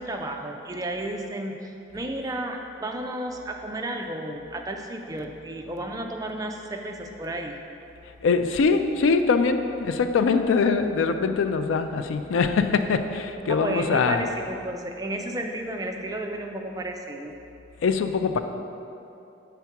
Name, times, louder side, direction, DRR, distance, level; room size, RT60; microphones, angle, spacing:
voice 1, 0.0-7.5 13.5-17.3, right 1 dB, 20° right, 3 dB, 0.3 m, -32 dB
voice 2, 8.0-14.2 17.8-18.4, left 5 dB, 80° left, 8 dB, 0.3 m, -23 dB
5.8 x 3.5 x 5.7 m, 2.7 s
head